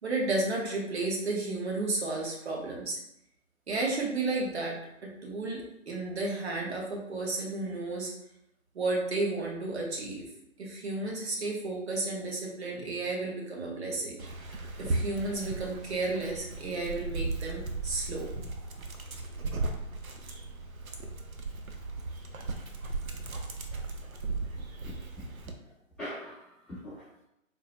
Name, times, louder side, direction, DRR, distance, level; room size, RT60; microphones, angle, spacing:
voice 1, 0.0-3.0 3.7-8.1 8.7-10.3 10.6-18.3, right 2 dB, 50° right, -2 dB, 1.0 m, -33 dB
Dog, 14.2-25.5, right 3 dB, 85° right, 0.6 m, -36 dB
voice 2, 24.8-25.7 26.0-27.2, equal, ahead, -21 dB, 0.6 m, -43 dB
3.8 x 2.1 x 2.9 m, 0.80 s
figure-of-eight pair, 145°, 41 cm